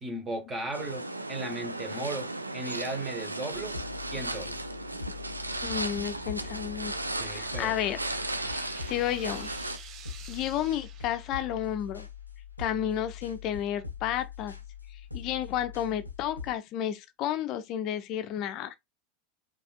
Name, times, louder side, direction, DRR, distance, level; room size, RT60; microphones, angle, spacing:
voice 1, 0.0-3.8 4.1-4.6 7.2-7.9, right 2 dB, 20° right, 1.0 m, -36 dB
sound 1, 0.7-9.8, right 2 dB, 85° right, 0.3 m, -36 dB
sound 2, 3.5-16.5, left 7 dB, 90° left, 0.6 m, -43 dB
sound 3, 5.4-11.7, right 9 dB, 45° right, 1.1 m, -49 dB
voice 2, 5.6-6.9 7.2-8.0 8.5-9.5 10.3-12.1 12.6-14.5 15.1-18.7, left 10 dB, 45° left, 0.5 m, -32 dB
5.0 x 2.4 x 2.4 m
figure-of-eight pair, 80°, 0 cm